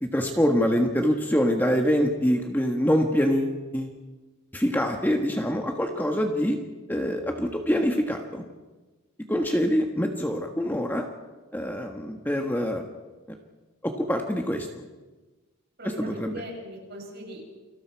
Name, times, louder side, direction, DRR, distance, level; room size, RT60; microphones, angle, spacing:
voice 1, 0.0-4.0 4.5-6.6 6.9-8.4 9.3-11.1 11.5-12.9 13.3-13.4 13.8-14.8 15.8-16.4, equal, 10° left, 2 dB, 1.5 m, -25 dB
voice 2, 15.8-17.4, right 1 dB, 50° right, -1 dB, 7.3 m, -39 dB
29.5 x 23.5 x 4.7 m, 1.2 s
head